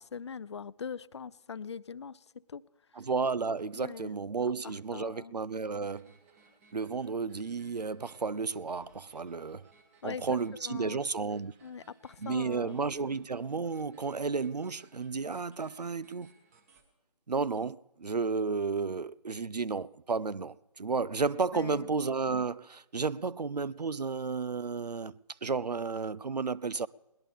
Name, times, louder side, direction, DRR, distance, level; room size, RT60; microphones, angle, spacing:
voice 1, 0.0-2.2 2.5-2.6 3.8-4.1 4.6-5.3 10.0-10.3 10.6-11.0 11.6-12.8 21.5-21.9, left 6 dB, 45° left, 0.4 m, -42 dB
voice 2, 2.9-6.1 6.7-9.7 10.0-11.5 12.2-16.3 17.3-25.1 25.4-26.9, right 4 dB, 85° right, 0.6 m, -32 dB
sound 1, 5.8-16.8, right 4 dB, 20° right, 1.5 m, -64 dB
21.5 x 19.0 x 3.5 m
figure-of-eight pair, 150°, 20 cm